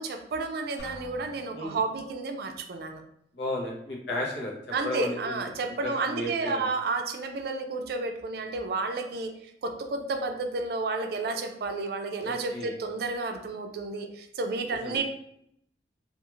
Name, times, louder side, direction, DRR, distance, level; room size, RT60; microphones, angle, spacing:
voice 1, 0.0-3.0 4.7-9.3 9.6-15.0, right 3 dB, 60° right, 5 dB, 0.4 m, -31 dB
Drum, 0.8-2.0, equal, 60° left, 1.3 m, -47 dB
voice 2, 3.3-4.5 4.8-5.5 5.8-6.6 12.2-12.7 14.7-15.0, left 1 dB, 85° left, -2 dB, 0.8 m, -34 dB
2.4 x 2.4 x 3.0 m, 0.74 s
head